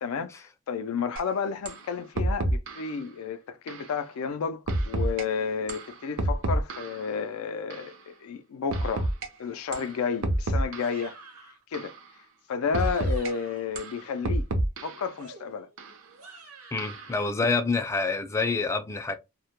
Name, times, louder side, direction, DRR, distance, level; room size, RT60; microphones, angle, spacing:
voice 1, 0.0-9.1 9.4-11.2 11.7-11.9 12.5-14.4 14.8-15.7, left 6 dB, 85° left, 0.4 m, -31 dB
sound 1, 1.2-1.3 1.7-1.8 2.2-2.9 3.7-3.9 4.7-5.2 5.7-7.1 7.7-7.9 8.7-9.3 9.7-9.9 10.2-11.1 11.7-12.0 12.7-13.3 13.8-15.1 15.8-15.9 16.8-17.2, right 1 dB, 65° right, 0.6 m, -28 dB
sound 2, 10.8-11.6 12.6-13.8 15.2-17.3, right 3 dB, 85° right, 0.9 m, -49 dB
voice 2, 16.7-19.2, left 3 dB, 15° left, 0.3 m, -27 dB
2.1 x 2.1 x 2.9 m
head